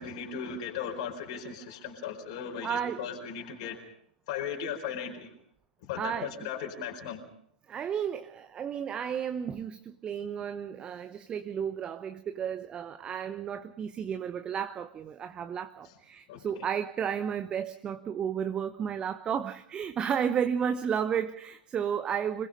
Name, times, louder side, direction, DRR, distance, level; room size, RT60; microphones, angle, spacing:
voice 1, 0.0-3.9 4.3-5.3 5.8-7.3 15.8-15.9 16.3-16.7, left 7 dB, 45° left, 2 dB, 4.7 m, -37 dB
voice 2, 2.6-3.1 6.0-6.3 7.7-22.5, right 8 dB, 20° right, 10 dB, 0.9 m, -32 dB
27.0 x 21.0 x 5.3 m, 0.64 s
figure-of-eight pair, 105°, 5 cm